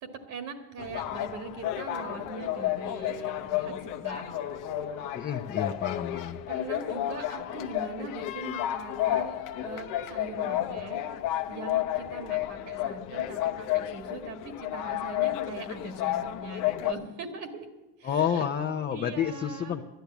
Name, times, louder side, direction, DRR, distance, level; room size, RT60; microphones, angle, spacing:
voice 1, 0.0-5.3 6.5-11.0 11.5-17.7 18.0-18.5 18.9-19.8, right 3 dB, 60° right, 5 dB, 1.8 m, -41 dB
sound 1, 0.8-16.9, left 13 dB, 75° left, 1.0 m, -32 dB
voice 2, 5.1-6.4 18.0-19.8, left 8 dB, 30° left, 3 dB, 0.8 m, -29 dB
12.0 x 10.5 x 8.2 m, 1.1 s
cardioid pair, 120°, 32 cm